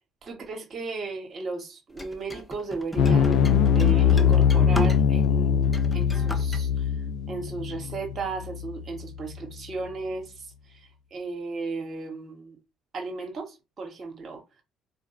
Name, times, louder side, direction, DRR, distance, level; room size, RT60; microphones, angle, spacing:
voice 1, 0.2-6.8 7.3-12.6 12.9-14.6, right 3 dB, 40° right, 1.2 m, -35 dB
sound 1, 2.0-5.3 5.6-6.6, equal, 10° left, 0.7 m, -35 dB
sound 2, 3.0-9.4, left 8 dB, 55° left, 0.4 m, -22 dB
4.3 x 2.2 x 3.0 m
figure-of-eight pair, 50°, 0 cm